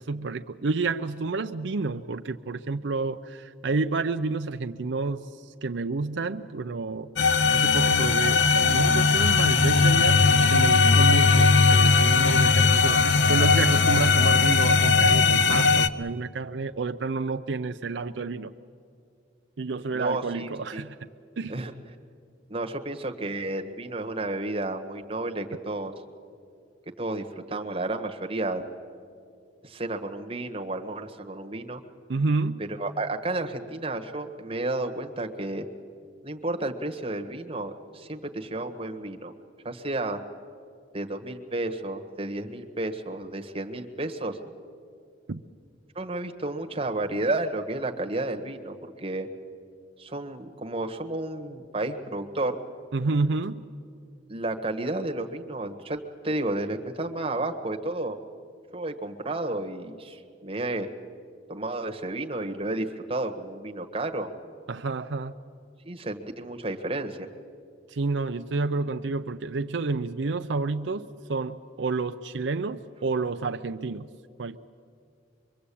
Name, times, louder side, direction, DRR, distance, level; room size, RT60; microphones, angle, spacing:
voice 1, 0.0-7.1 7.5-18.5 19.6-21.0 21.4-21.6 32.1-32.6 45.3-45.4 52.9-53.7 64.7-65.3 67.9-74.1 74.4-74.6, right 3 dB, 70° right, 7 dB, 0.6 m, -29 dB
sound 1, 7.2-15.9, left 4 dB, 70° left, 0.7 m, -19 dB
voice 2, 19.9-20.8 21.5-21.7 22.5-25.9 27.0-28.7 29.6-31.8 32.6-35.7 36.2-39.3 39.6-40.2 40.9-44.4 45.9-49.3 50.0-52.6 54.3-58.2 58.7-60.9 61.5-64.3 65.8-67.3, right 2 dB, 30° right, 4 dB, 1.5 m, -32 dB
25.0 x 23.0 x 8.5 m, 2.3 s
head